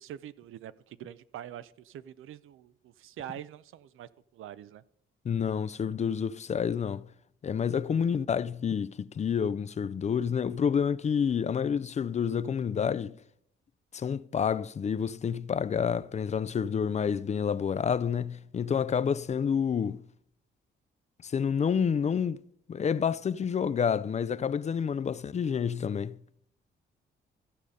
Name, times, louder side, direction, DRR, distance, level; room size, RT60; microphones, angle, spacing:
voice 1, 0.0-4.8, right 11 dB, 80° right, 0.5 m, -45 dB
voice 2, 5.2-7.0 7.4-13.2 13.9-20.0 21.2-22.4 22.7-26.2, left 7 dB, 35° left, 0.4 m, -29 dB
14.0 x 5.0 x 5.3 m
cardioid pair, 95°, 21 cm